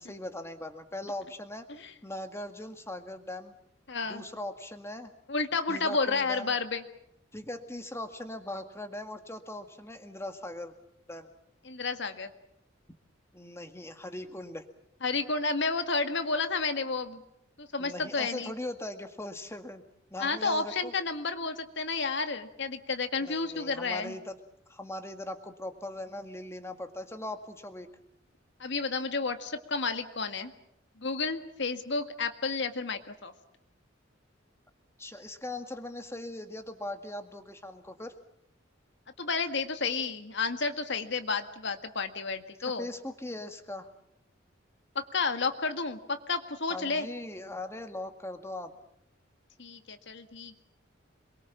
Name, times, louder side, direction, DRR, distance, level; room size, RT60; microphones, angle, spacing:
voice 1, 0.0-1.7 2.0-3.5 4.1-5.1 5.7-6.5 7.3-10.7 11.1-11.3 13.3-14.7 17.8-19.8 20.1-20.9 23.2-24.4 24.7-27.9 35.0-38.1 42.8-43.9 46.7-48.7, left 1 dB, 15° left, 7 dB, 2.0 m, -40 dB
voice 2, 3.9-4.2 5.3-6.8 11.6-12.3 15.0-17.2 17.6-18.5 20.2-24.1 28.6-30.5 31.0-33.3 39.2-42.9 45.0-47.1 49.6-50.6, left 4 dB, 65° left, 8 dB, 1.9 m, -31 dB
27.5 x 22.5 x 7.3 m, 0.74 s
head